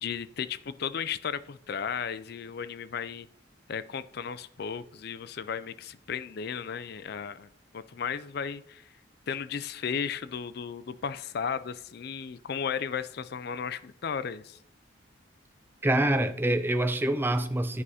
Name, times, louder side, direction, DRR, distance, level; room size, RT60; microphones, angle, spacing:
voice 1, 0.0-3.3 3.7-7.5 7.7-8.8 9.3-14.6, left 7 dB, 55° left, 0.4 m, -35 dB
voice 2, 15.8-17.8, right 1 dB, 10° right, 0.4 m, -26 dB
9.8 x 4.9 x 4.2 m
head